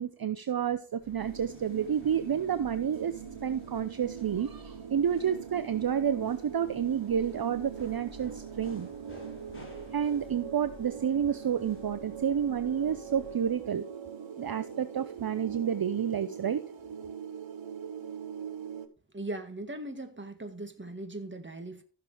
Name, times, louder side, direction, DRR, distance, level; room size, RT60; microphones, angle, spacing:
voice 1, 0.0-8.9 9.9-13.8 14.4-16.6, right 8 dB, 55° right, 0.7 m, -30 dB
sound 1, 1.0-13.6, left 2 dB, 30° left, 6.9 m, -53 dB
sound 2, 1.2-18.9, right 7 dB, 85° right, 1.2 m, -42 dB
voice 2, 19.1-21.8, right 2 dB, 25° right, 1.9 m, -39 dB
15.0 x 6.7 x 3.4 m
wide cardioid pair, 85°, 44 cm